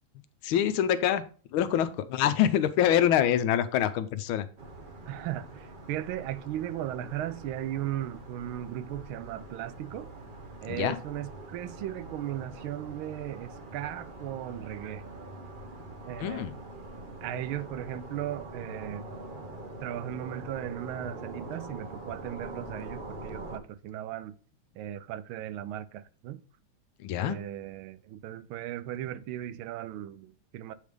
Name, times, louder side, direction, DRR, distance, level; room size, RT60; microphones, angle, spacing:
voice 1, 0.4-1.2 1.5-4.4 10.7-11.0 16.2-16.5 27.0-27.4, left 10 dB, 80° left, 1.5 m, -25 dB
sound 1, 4.6-23.6, right 2 dB, 45° right, 0.6 m, -44 dB
voice 2, 5.1-10.1 10.6-15.0 16.0-16.5 17.2-19.1 19.8-24.4 24.7-26.4 27.2-30.7, right 12 dB, 85° right, 1.4 m, -37 dB
8.2 x 3.3 x 5.1 m
omnidirectional pair, 2.3 m